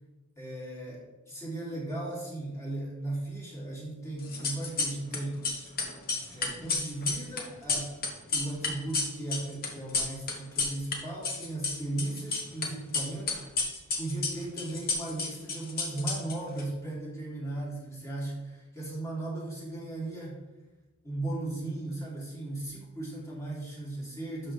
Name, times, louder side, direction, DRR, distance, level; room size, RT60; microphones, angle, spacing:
voice 1, 0.4-5.4 6.3-7.9 8.3-13.4 14.0-20.4 21.0-24.5, right 2 dB, 15° left, -5 dB, 2.8 m, -36 dB
sound 1, 4.2-5.2 5.4-11.0 11.2-12.7 12.9-16.6, left 4 dB, 45° left, 1.3 m, -31 dB
12.0 x 5.6 x 3.4 m, 1.1 s
head